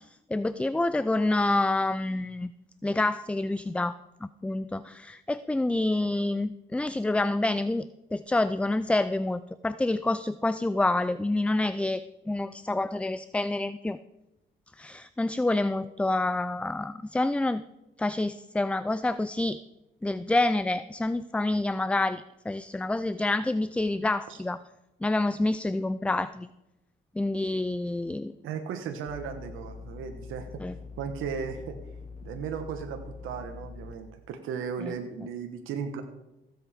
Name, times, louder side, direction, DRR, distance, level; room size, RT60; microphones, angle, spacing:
voice 1, 0.0-2.5 2.8-12.0 12.3-14.0 14.8-17.6 18.0-19.6 20.0-24.6 25.0-26.5 27.2-28.3 30.6-30.8 34.8-34.9, left 2 dB, 5° left, 14 dB, 0.3 m, -28 dB
voice 2, 28.4-30.6 31.0-31.8 32.2-36.0, right 6 dB, 85° right, 5 dB, 1.2 m, -36 dB
sound 1, 29.1-33.9, left 4 dB, 40° left, 1.6 m, -44 dB
15.5 x 7.9 x 5.0 m, 0.93 s
cardioid pair, 90°, 20 cm